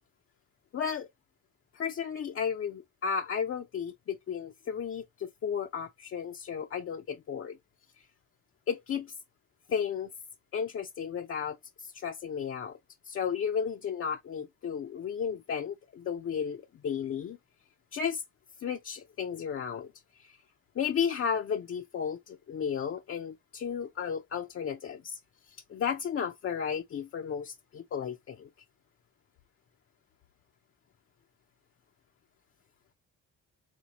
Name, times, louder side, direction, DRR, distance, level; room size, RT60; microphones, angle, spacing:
voice 1, 0.7-1.1 1.7-7.6 8.7-9.1 9.7-10.1 10.5-12.8 13.1-17.4 17.9-18.2 18.6-19.9 20.2-20.4 20.8-25.2 25.5-28.5, left 7 dB, 45° left, 0.6 m, -34 dB
4.3 x 4.2 x 2.8 m
cardioid pair, 90°, 30 cm